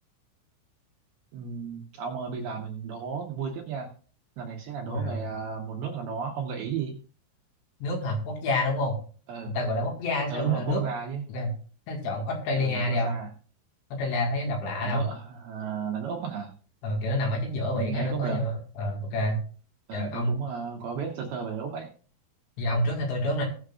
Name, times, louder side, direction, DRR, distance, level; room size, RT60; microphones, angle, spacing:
voice 1, 1.3-3.9 4.4-7.0 9.3-9.5 10.3-11.2 12.6-13.3 14.8-16.5 17.7-18.4 19.9-21.9, right 7 dB, 70° right, 0 dB, 2.5 m, -33 dB
voice 2, 4.9-5.2 7.8-9.0 9.5-10.8 11.3-11.5 11.9-13.1 13.9-15.0 16.8-19.4 19.9-20.4 22.6-23.5, left 1 dB, 65° left, 1 dB, 3.7 m, -28 dB
19.0 x 6.5 x 2.4 m, 0.41 s
omnidirectional pair, 5.8 m